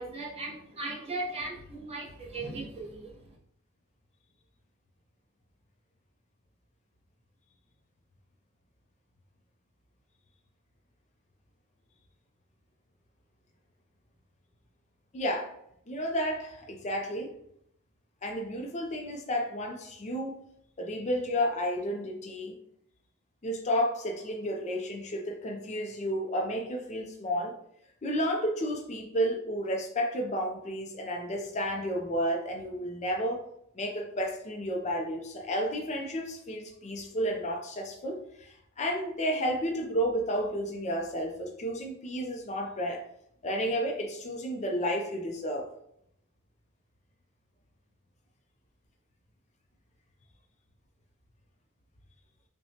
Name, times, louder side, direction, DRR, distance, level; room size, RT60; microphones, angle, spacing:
voice 1, 0.0-3.4, right 2 dB, 25° right, -3 dB, 0.9 m, -38 dB
voice 2, 15.1-15.5 15.9-17.3 18.2-20.3 20.8-22.6 23.4-27.6 28.0-33.4 33.7-43.0 43.4-45.7, equal, 30° left, 2 dB, 0.5 m, -31 dB
5.6 x 2.2 x 2.8 m, 0.72 s
head